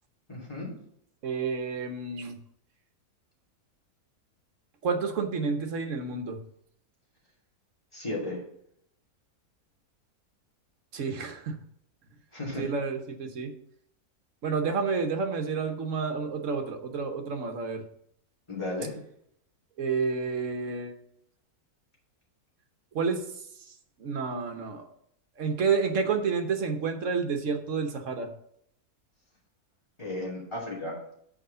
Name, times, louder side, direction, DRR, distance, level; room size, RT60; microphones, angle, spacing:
voice 1, 0.3-0.7 7.9-8.4 12.3-12.7 18.5-19.0 30.0-31.0, left 2 dB, 20° left, -5 dB, 2.8 m, -34 dB
voice 2, 1.2-2.4 4.8-6.4 10.9-11.6 12.6-13.5 14.4-17.8 19.8-20.9 22.9-23.2 24.0-24.8 25.4-28.3, right 5 dB, 60° right, 5 dB, 1.2 m, -29 dB
6.4 x 4.9 x 6.6 m, 0.71 s
omnidirectional pair, 1.6 m